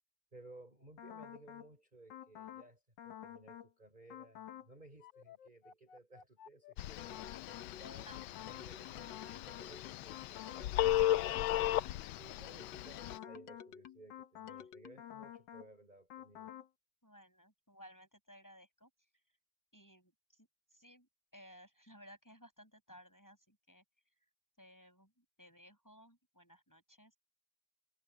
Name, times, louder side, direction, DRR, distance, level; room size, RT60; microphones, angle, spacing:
voice 1, 0.3-7.2 7.8-11.6 12.2-16.5, right 2 dB, 20° right, 6.1 m, -58 dB
sound 1, 1.0-1.7 2.1-2.7 3.0-3.7 4.1-4.7 5.0-12.1 12.5-15.7 16.1-16.7, left 10 dB, 60° left, 1.7 m, -51 dB
Telephone, 6.8-13.2, left 13 dB, 75° left, 1.3 m, -36 dB
voice 2, 17.0-18.9 19.7-23.8 24.2-24.3 24.6-27.2, equal, 10° left, 7.8 m, -59 dB
omnidirectional pair, 2.4 m